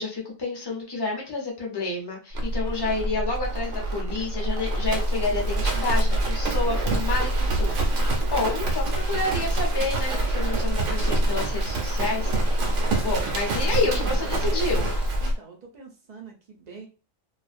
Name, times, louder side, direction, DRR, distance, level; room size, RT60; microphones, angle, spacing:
voice 1, 0.0-7.8 8.0-12.4 13.0-14.9, left 3 dB, 25° left, -1 dB, 0.5 m, -29 dB
Livestock farm animals working animals, 2.3-15.4, right 1 dB, 70° right, 0.9 m, -25 dB
voice 2, 13.7-14.7 15.2-16.9, right 5 dB, 45° right, 0 dB, 0.5 m, -44 dB
2.4 x 2.1 x 2.5 m, 0.32 s
omnidirectional pair, 1.4 m